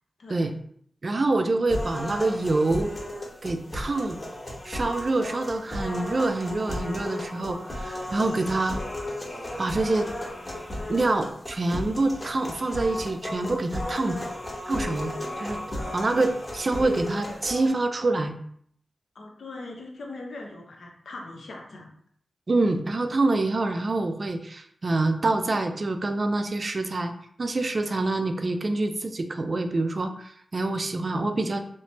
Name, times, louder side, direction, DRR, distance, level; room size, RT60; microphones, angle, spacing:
voice 1, 1.0-3.0 3.4-4.2 4.6-8.8 9.6-10.1 10.9-14.2 14.7-15.6 15.9-18.4 22.5-27.1 27.4-31.6, right 2 dB, 50° right, 7 dB, 0.3 m, -26 dB
sound 1, 1.7-17.7, left 1 dB, 35° left, 1.0 m, -34 dB
voice 2, 19.1-21.9, left 2 dB, 80° left, 1 dB, 0.5 m, -40 dB
3.2 x 2.0 x 2.8 m, 0.64 s
cardioid pair, 50°, 0 cm